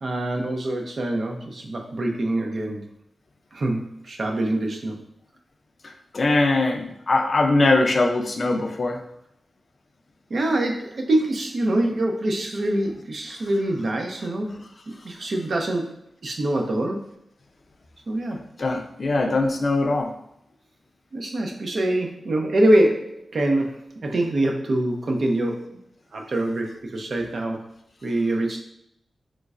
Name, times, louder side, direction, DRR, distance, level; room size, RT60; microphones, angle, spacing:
voice 1, 0.0-2.8 3.5-5.0 10.3-14.7 15.0-17.1 18.1-18.4 21.1-25.8 26.1-27.6 28.0-28.6, right 1 dB, 55° right, 2 dB, 0.5 m, -24 dB
voice 2, 5.8-9.0 18.6-20.1, left 2 dB, 45° left, 4 dB, 0.4 m, -21 dB
3.8 x 3.1 x 2.4 m, 0.77 s
wide cardioid pair, 120°, 0 cm